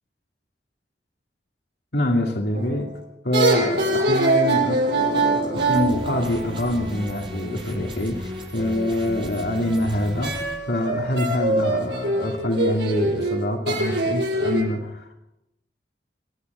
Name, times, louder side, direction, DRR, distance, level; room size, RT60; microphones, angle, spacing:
voice 1, 1.9-2.9 3.2-15.1, left 1 dB, 65° left, 1 dB, 2.6 m, -25 dB
sound 1, 2.5-2.9 3.3-7.0 10.2-14.6, right 2 dB, 70° right, 5.9 m, -23 dB
sound 2, 5.6-10.6, equal, 30° right, 6.6 m, -35 dB
27.0 x 11.0 x 9.5 m, 0.90 s
head